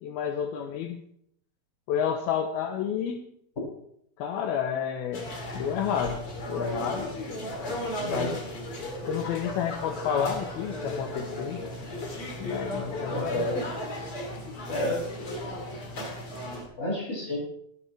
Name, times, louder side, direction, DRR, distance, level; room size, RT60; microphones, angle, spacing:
voice 1, 0.0-1.0 1.9-3.2 4.2-5.3 5.5-6.2 6.5-7.1 8.1-8.4 9.1-11.6 12.4-13.5, left 8 dB, 75° left, 3 dB, 2.9 m, -30 dB
sound 1, 5.1-16.6, left 1 dB, 35° left, 3.6 m, -35 dB
voice 2, 8.0-8.4 13.1-13.6 14.7-15.0 16.8-17.4, left 1 dB, 20° left, -4 dB, 7.7 m, -30 dB
24.5 x 10.0 x 3.4 m, 0.71 s
omnidirectional pair, 4.5 m